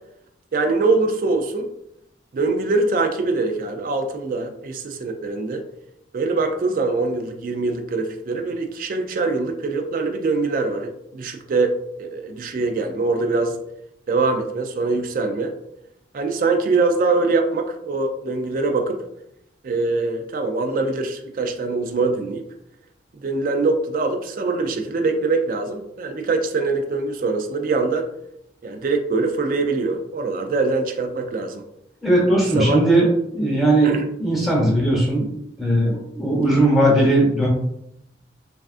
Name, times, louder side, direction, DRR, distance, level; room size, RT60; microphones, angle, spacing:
voice 1, 0.5-1.7 2.3-5.6 6.1-13.6 14.1-15.5 16.1-19.0 19.6-22.4 23.2-28.1 28.6-31.6 32.6-32.8 33.8-34.1, right 3 dB, 50° right, 5 dB, 0.3 m, -23 dB
voice 2, 32.0-33.1 33.3-35.3 35.6-37.5, right 1 dB, ahead, -4 dB, 1.0 m, -18 dB
3.4 x 2.4 x 2.4 m, 0.79 s
head